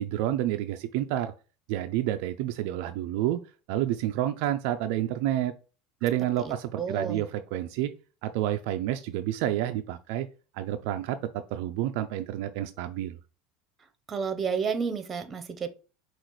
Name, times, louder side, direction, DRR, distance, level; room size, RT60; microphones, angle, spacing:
voice 1, 0.0-1.3 1.7-3.4 3.7-5.5 6.0-7.9 8.2-10.3 10.5-13.2, right 12 dB, 70° right, 0.3 m, -29 dB
voice 2, 6.4-7.2 14.1-15.7, right 6 dB, 30° right, 0.8 m, -31 dB
5.7 x 2.4 x 3.1 m
hypercardioid pair, 90°, 0 cm